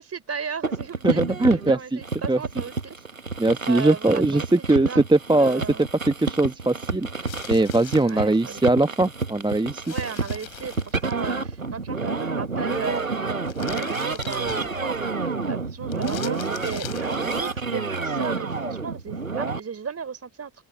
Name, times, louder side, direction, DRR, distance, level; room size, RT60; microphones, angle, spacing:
voice 1, 0.0-3.0 3.7-4.5 4.8-5.0 5.4-5.9 7.9-8.6 9.8-15.0 15.5-20.6, right 6 dB, 40° right, 4.6 m, -35 dB
sound 1, 0.6-19.6, right 4 dB, 90° right, 1.4 m, -29 dB
voice 2, 1.0-1.8 2.3-2.4 3.4-9.8, right 2 dB, 10° right, 1.5 m, -21 dB
sound 2, 7.3-8.2 9.8-11.3 13.4-15.0 15.9-17.6, left 20 dB, 75° left, 4.0 m, -42 dB
open air
figure-of-eight pair, 40°, 40 cm